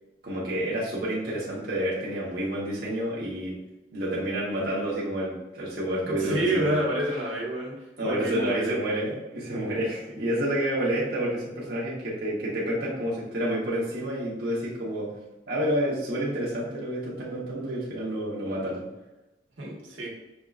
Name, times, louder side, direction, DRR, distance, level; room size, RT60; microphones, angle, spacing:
voice 1, 0.2-3.6 3.9-6.8 8.0-15.1 15.5-18.9, right 1 dB, 55° right, -6 dB, 1.1 m, -29 dB
voice 2, 6.0-7.7 8.0-8.8 10.1-10.5 19.6-20.1, right 1 dB, 85° right, -4 dB, 1.3 m, -29 dB
5.5 x 3.6 x 2.4 m, 1.0 s
head